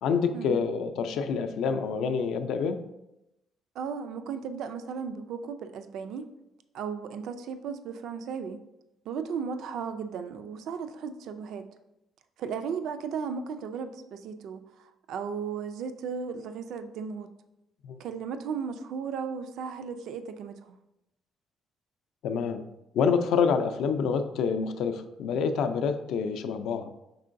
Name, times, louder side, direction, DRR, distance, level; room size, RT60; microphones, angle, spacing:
voice 1, 0.0-2.8 17.8-18.0 22.2-22.7 22.9-26.9, left 6 dB, 70° left, 8 dB, 0.4 m, -27 dB
voice 2, 3.8-6.3 6.7-8.6 9.1-11.7 12.4-17.3 18.0-20.8, right 6 dB, 70° right, 9 dB, 0.3 m, -35 dB
5.4 x 3.7 x 2.6 m, 0.89 s
cardioid pair, 140°, 0 cm